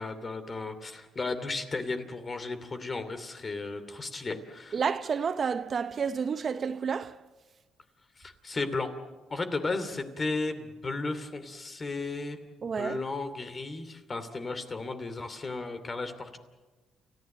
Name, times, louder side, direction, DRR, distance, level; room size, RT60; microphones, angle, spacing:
voice 1, 0.0-4.8 8.2-8.9 9.3-12.4 12.8-16.4, left 3 dB, 30° left, 2.6 m, -34 dB
voice 2, 4.7-7.2 12.6-13.0, right 6 dB, 45° right, 0.7 m, -30 dB
30.0 x 15.0 x 7.9 m
cardioid pair, 90°, 0 cm